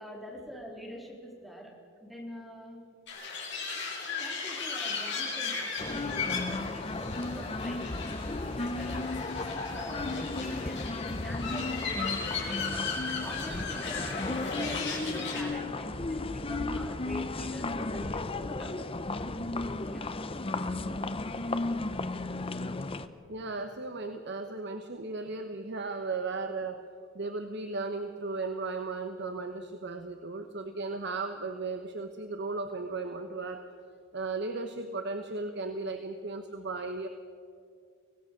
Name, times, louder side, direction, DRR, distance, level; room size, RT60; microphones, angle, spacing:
voice 1, 0.0-1.8 2.0-2.9 4.2-12.8 13.2-18.8 19.9-20.1, equal, ahead, -2 dB, 3.6 m, -44 dB
sound 1, 3.1-15.4, left 4 dB, 55° left, 5.3 m, -37 dB
sound 2, 5.8-23.1, left 2 dB, 25° left, 0.8 m, -34 dB
voice 2, 23.3-26.8 27.1-33.7 34.1-37.1, right 3 dB, 55° right, 7 dB, 1.1 m, -36 dB
25.0 x 17.5 x 6.8 m, 2.3 s
head